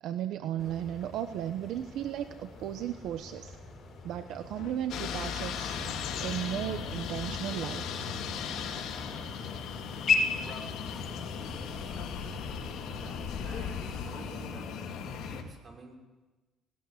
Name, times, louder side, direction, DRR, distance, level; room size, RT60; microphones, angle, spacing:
voice 1, 0.0-3.5 4.0-5.8 6.2-7.8, right 11 dB, 70° right, 9 dB, 1.1 m, -35 dB
sound 1, 0.6-13.9, left 4 dB, 40° left, 5.8 m, -38 dB
sound 2, 2.5-2.7 4.4-14.5, left 7 dB, 85° left, 3.2 m, -46 dB
sound 3, 4.9-15.4, left 6 dB, 70° left, 3.6 m, -37 dB
voice 2, 12.9-14.7 15.2-16.0, right 3 dB, 35° right, 2 dB, 5.7 m, -50 dB
19.5 x 19.0 x 9.8 m, 1.2 s
cardioid pair, 125°, 0 cm